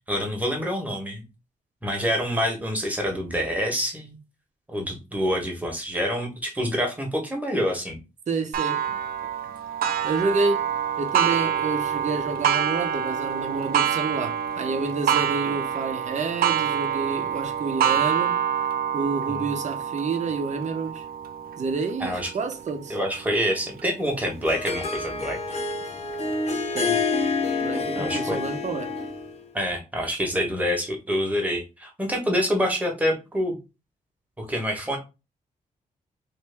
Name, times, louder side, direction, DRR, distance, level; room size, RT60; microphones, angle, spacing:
voice 1, 0.1-1.2 1.8-4.2 4.7-8.0 19.3-19.5 22.0-22.3 22.9-25.6 27.9-28.4 29.5-33.5 34.4-35.0, equal, 10° right, 1.1 m, -27 dB
voice 2, 8.3-8.8 10.0-10.6 11.0-18.3 18.9-21.0 21.6-23.0 26.7-27.0 27.6-28.9, right 4 dB, 50° right, 0.8 m, -29 dB
Clock, 8.5-23.8 24.4-24.5 25.1-25.2 26.1-26.2, right 9 dB, 80° right, 0.4 m, -27 dB
Harp, 24.1-29.4, left 4 dB, 45° left, 0.9 m, -28 dB
3.0 x 2.7 x 3.4 m
cardioid pair, 110°, 15 cm